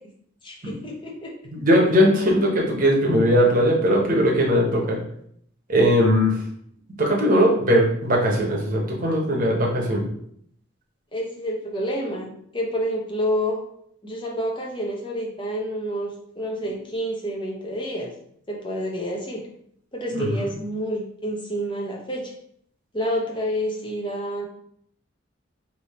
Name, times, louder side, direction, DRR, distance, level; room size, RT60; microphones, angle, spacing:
voice 1, 0.4-1.3 11.1-13.6 14.0-18.1 18.5-19.4 19.9-22.3 22.9-24.5, equal, 25° left, -1 dB, 0.8 m, -28 dB
voice 2, 1.5-5.0 5.7-6.4 7.0-10.0 20.1-20.3, equal, 40° right, -2 dB, 1.0 m, -19 dB
3.5 x 2.9 x 4.2 m, 0.67 s
head